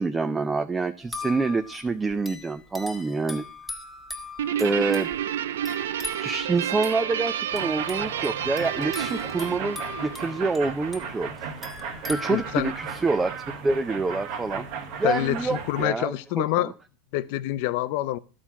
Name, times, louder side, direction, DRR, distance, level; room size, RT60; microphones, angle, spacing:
voice 1, 0.0-3.4 4.6-5.1 6.2-11.3 12.1-13.3 13.6-16.7, right 3 dB, 15° right, 0.5 m, -27 dB
sound 1, 1.0-12.9, left 2 dB, ahead, 1.4 m, -40 dB
Guitar, 4.4-11.1, right 10 dB, 90° right, 0.4 m, -30 dB
sound 2, 7.5-15.9, right 6 dB, 60° right, 1.4 m, -36 dB
voice 2, 12.3-12.7 15.0-16.7 17.1-18.2, left 15 dB, 65° left, 0.5 m, -26 dB
12.5 x 4.3 x 5.9 m
supercardioid pair, 120°, 0 cm